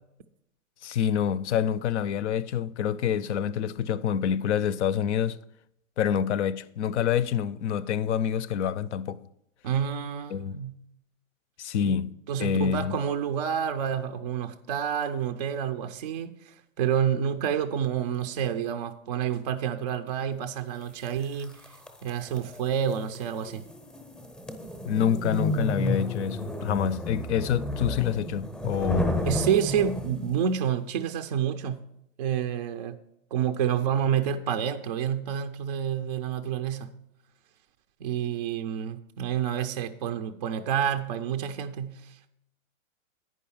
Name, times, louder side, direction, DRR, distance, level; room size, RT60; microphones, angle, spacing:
voice 1, 0.8-5.4 6.0-9.2 10.3-10.6 11.6-12.1 12.4-13.0 24.9-29.1, left 8 dB, 60° left, 0.6 m, -27 dB
voice 2, 9.6-10.8 11.8-12.0 12.3-21.8 22.0-23.6 29.2-31.8 32.2-33.0 33.3-36.9 38.0-42.3, right 8 dB, 35° right, 0.4 m, -29 dB
sound 1, 21.0-30.4, left 1 dB, 5° left, 0.6 m, -32 dB
9.4 x 5.5 x 7.0 m
hypercardioid pair, 155°, 40 cm